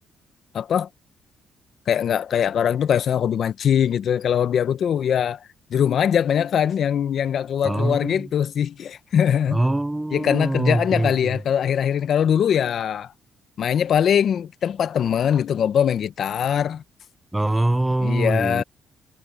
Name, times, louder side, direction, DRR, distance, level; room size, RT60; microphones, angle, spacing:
voice 1, 0.5-0.9 1.9-5.4 5.7-9.6 10.1-13.1 13.6-16.8 18.0-18.6, left 8 dB, 60° left, 0.9 m, -22 dB
voice 2, 7.6-8.2 9.5-11.4 17.3-18.6, right 1 dB, 10° right, 0.6 m, -23 dB
cardioid pair, 90°, 0 cm